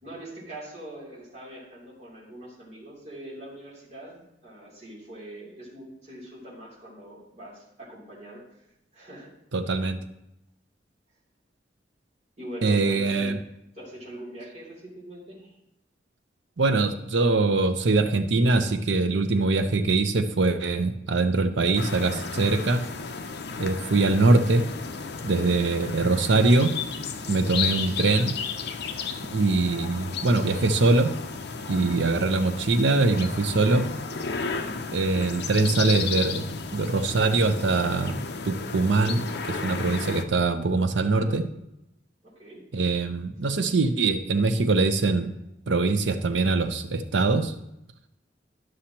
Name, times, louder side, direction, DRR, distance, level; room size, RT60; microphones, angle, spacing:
voice 1, 0.0-8.4 8.9-9.3 12.4-13.3 13.7-15.5 42.2-42.6, right 1 dB, 40° right, -7 dB, 3.0 m, -42 dB
voice 2, 9.5-10.0 12.6-13.4 16.6-22.8 23.6-24.6 25.2-26.7 27.3-28.4 29.3-31.1 31.7-33.9 34.9-41.5 42.7-45.3 45.7-47.5, right 3 dB, 80° right, 9 dB, 0.7 m, -23 dB
sound 1, 21.7-40.2, left 5 dB, 60° left, 0.6 m, -33 dB
11.5 x 6.4 x 2.9 m, 0.85 s
head